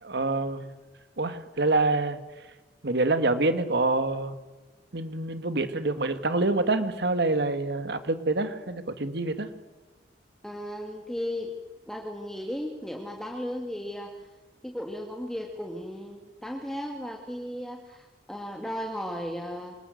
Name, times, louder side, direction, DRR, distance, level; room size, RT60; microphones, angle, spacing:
voice 1, 0.0-0.7 1.2-2.2 2.8-4.3 4.9-9.5, right 2 dB, 65° right, 10 dB, 2.0 m, -26 dB
voice 2, 10.4-11.5 11.9-14.1 14.6-19.7, equal, ahead, 1 dB, 2.2 m, -35 dB
26.0 x 20.0 x 7.9 m, 1.2 s
head